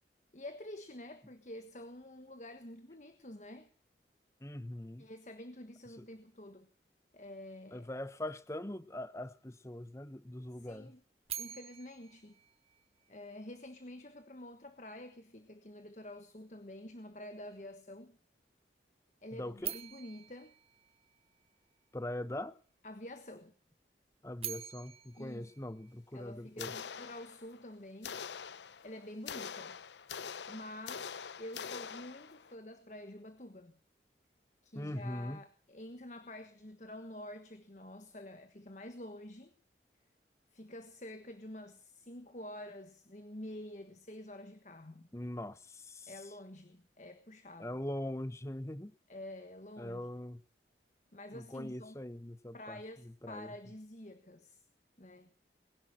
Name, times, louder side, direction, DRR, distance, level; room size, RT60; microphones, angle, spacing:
voice 1, 0.3-3.7 5.0-6.7 7.1-7.9 10.6-11.0 11.4-12.4 13.1-18.2 19.2-20.5 22.8-23.5 25.1-25.5 26.1-28.2 28.8-29.8 30.5-31.1 31.4-33.8 34.6-39.5 40.5-45.1 46.1-47.8 49.1-50.0 51.1-52.0 52.5-54.6 55.0-55.3, left 1 dB, 40° left, 1.4 m, -48 dB
voice 2, 4.4-5.1 6.0-6.1 7.7-10.9 19.3-19.7 21.9-22.6 24.2-26.8 34.7-35.4 45.1-46.1 47.6-48.9 49.8-50.4 51.3-53.5, left 1 dB, 15° left, 1.0 m, -42 dB
sound 1, 11.3-13.4 19.6-21.8 24.1-26.5, right 11 dB, 35° right, 1.0 m, -46 dB
sound 2, 26.6-27.6 28.0-32.5, left 7 dB, 80° left, 0.7 m, -44 dB
21.0 x 11.0 x 6.2 m
head